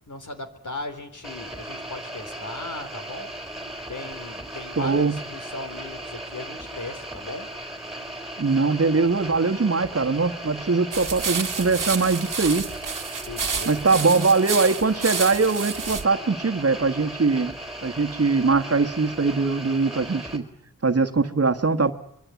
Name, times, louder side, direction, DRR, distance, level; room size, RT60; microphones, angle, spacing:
voice 1, 0.1-3.3 3.9-7.5 13.3-13.8, left 2 dB, 60° left, 7 dB, 3.8 m, -37 dB
sound 1, 1.2-20.4, right 1 dB, ahead, 4.1 m, -37 dB
voice 2, 4.8-5.2 8.4-12.7 13.7-17.5 17.8-20.4 20.8-21.9, right 4 dB, 45° right, 7 dB, 1.5 m, -22 dB
sound 2, 10.9-16.0, right 5 dB, 65° right, 1.6 m, -30 dB
25.0 x 22.5 x 8.3 m, 0.79 s
wide cardioid pair, 80°, 34 cm